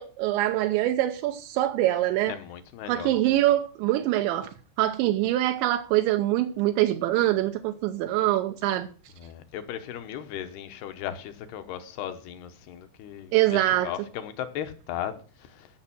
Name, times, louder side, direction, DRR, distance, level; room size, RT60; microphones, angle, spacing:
voice 1, 0.0-2.4 2.9-4.5 4.8-8.9 13.3-13.9, right 14 dB, 85° right, 3.1 m, -24 dB
voice 2, 2.3-3.4 9.2-15.2 15.5-15.7, left 10 dB, 75° left, 2.7 m, -37 dB
15.5 x 6.4 x 6.1 m
omnidirectional pair, 5.3 m